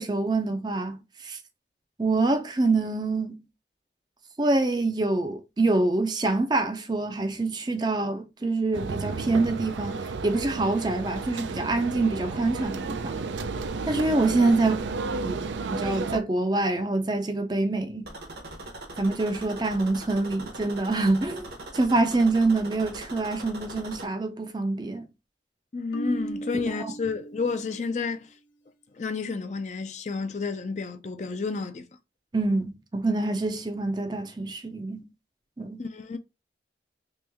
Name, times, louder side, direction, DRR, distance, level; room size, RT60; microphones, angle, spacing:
voice 1, 0.0-1.4 2.0-3.5 4.4-13.2 13.9-14.9 15.2-18.1 18.9-25.1 32.3-35.1 35.6-35.8, right 2 dB, 25° right, 0.4 m, -26 dB
sound 1, 8.7-16.2, right 4 dB, 85° right, 0.4 m, -32 dB
sound 2, 18.0-24.1, right 2 dB, 60° right, 0.9 m, -41 dB
voice 2, 25.7-28.3 28.9-31.9 35.8-36.2, left 4 dB, 40° left, 0.4 m, -30 dB
Marimba xylophone, 25.9-28.0, right 2 dB, 80° left, 0.6 m, -37 dB
3.0 x 3.0 x 3.4 m
head